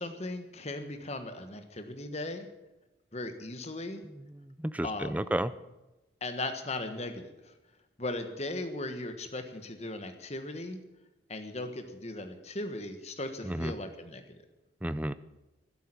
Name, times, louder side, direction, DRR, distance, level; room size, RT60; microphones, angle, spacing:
voice 1, 0.0-2.5 3.1-4.0 4.8-5.3 6.2-7.5 8.0-10.8 11.3-14.2, left 2 dB, 35° left, 8 dB, 1.4 m, -37 dB
voice 2, 4.0-5.5 13.4-13.7 14.8-15.1, right 1 dB, 5° right, 15 dB, 0.4 m, -32 dB
12.5 x 10.5 x 9.0 m, 1.0 s
head